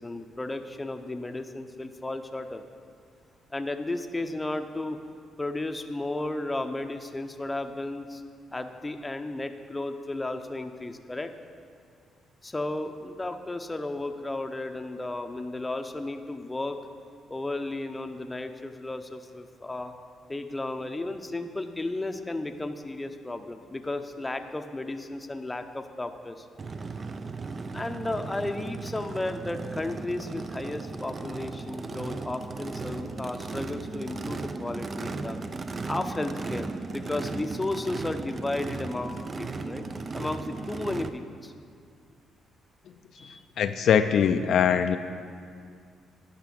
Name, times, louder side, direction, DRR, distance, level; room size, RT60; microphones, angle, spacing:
voice 1, 0.0-2.6 3.5-5.0 5.4-8.2 8.5-11.3 12.4-16.8 17.3-19.9 20.3-26.5 27.7-35.4 35.9-39.9 40.1-41.5 43.2-43.4, left 2 dB, 15° left, 7 dB, 0.7 m, -34 dB
Race car auto racing / Idling / Accelerating revving vroom, 26.6-41.1, right 3 dB, 35° right, 0.5 m, -36 dB
voice 2, 43.6-45.0, left 8 dB, 70° left, 8 dB, 0.4 m, -22 dB
10.5 x 5.9 x 7.6 m, 2.2 s
cardioid pair, 90°, 0 cm